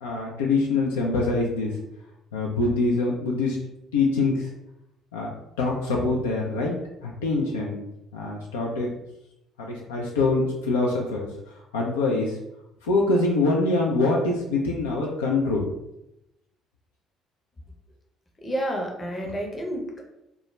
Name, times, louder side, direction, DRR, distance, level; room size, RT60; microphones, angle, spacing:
voice 1, 0.0-1.7 2.3-3.6 3.9-4.5 5.1-5.3 5.6-7.8 8.1-8.9 9.6-11.3 11.7-12.4 12.8-15.6, left 3 dB, 80° left, -2 dB, 0.3 m, -24 dB
voice 2, 18.4-20.0, right 1 dB, 30° left, 1 dB, 0.7 m, -30 dB
2.2 x 2.1 x 3.1 m, 0.85 s
figure-of-eight pair, 50°, 0 cm